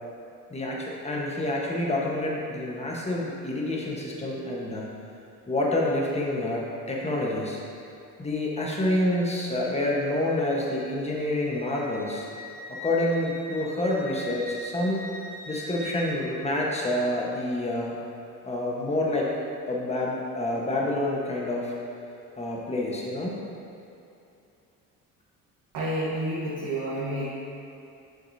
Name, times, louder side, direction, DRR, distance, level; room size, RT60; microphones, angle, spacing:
voice 1, 0.5-4.9 5.5-7.6 8.2-12.3 12.8-15.0 15.5-17.9 18.4-19.3 19.7-21.7 22.4-23.4, left 1 dB, 20° left, -3 dB, 1.2 m, -28 dB
Wind instrument woodwind instrument, 10.5-16.2, left 1 dB, 90° left, 1.5 m, -42 dB
voice 2, 25.7-27.2, right 1 dB, 75° right, -8 dB, 1.5 m, -29 dB
7.5 x 6.5 x 2.8 m, 2.7 s
cardioid pair, 95°, 34 cm